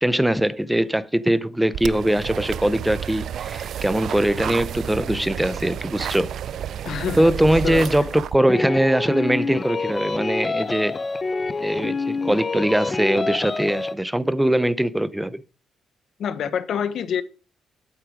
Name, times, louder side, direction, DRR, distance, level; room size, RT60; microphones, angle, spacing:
voice 1, 0.0-6.3 7.2-11.0 11.6-15.4, right 1 dB, 5° right, 0.6 m, -21 dB
sound 1, 1.7-8.4, right 9 dB, 65° right, 0.4 m, -31 dB
voice 2, 6.8-8.1 16.2-17.2, left 8 dB, 65° left, 1.1 m, -27 dB
sound 2, 8.5-14.0, left 3 dB, 30° left, 0.7 m, -27 dB
8.5 x 7.7 x 5.0 m
cardioid pair, 90°, 0 cm